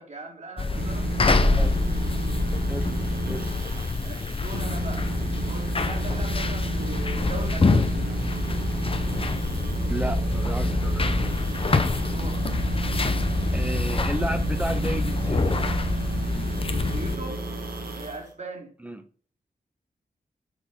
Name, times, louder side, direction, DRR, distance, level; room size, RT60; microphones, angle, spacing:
voice 1, 0.0-1.7 4.0-5.1 5.4-8.0 11.6-12.4 16.7-17.5 17.9-18.7, right 2 dB, 50° right, 2.8 m, -40 dB
sound 1, 0.6-17.2, left 3 dB, 35° left, 0.8 m, -27 dB
sound 2, 0.7-18.3, right 1 dB, 75° right, 1.8 m, -30 dB
voice 2, 1.4-1.7 2.7-2.9 3.3-3.5 9.9-11.4 13.5-15.4 18.8-19.0, right 1 dB, 10° right, 1.3 m, -33 dB
6.3 x 4.7 x 5.6 m
wide cardioid pair, 85°, 15 cm